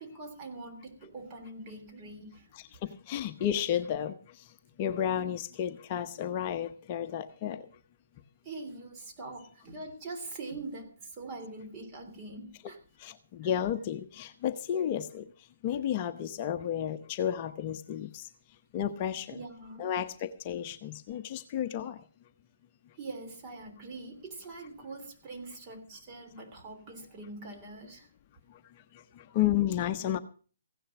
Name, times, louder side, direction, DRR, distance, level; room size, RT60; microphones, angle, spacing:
voice 1, 0.0-2.5 8.4-12.8 19.3-19.9 23.0-28.1, right 3 dB, 30° right, 4 dB, 3.3 m, -43 dB
voice 2, 2.8-4.1 4.8-7.7 13.0-15.2 15.6-18.3 18.7-19.4 19.8-22.0 29.2-30.2, left 10 dB, 35° left, 7 dB, 0.8 m, -32 dB
16.0 x 10.0 x 6.0 m, 0.40 s
hypercardioid pair, 150°, 0 cm